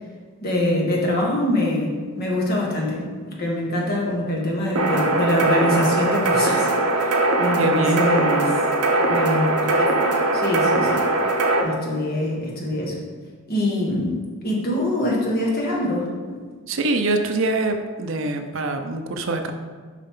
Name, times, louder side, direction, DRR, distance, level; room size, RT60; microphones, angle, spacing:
voice 1, 0.4-3.0 3.4-6.7 7.0-8.6 9.1-9.8 10.3-11.0 11.6-12.9 13.5-16.4, left 1 dB, 45° left, -3 dB, 1.6 m, -24 dB
sound 1, 4.8-11.6, right 2 dB, 80° right, 0.9 m, -20 dB
voice 2, 7.6-8.1 16.7-19.5, right 2 dB, 60° right, 6 dB, 0.6 m, -24 dB
7.3 x 5.5 x 3.7 m, 1.5 s
head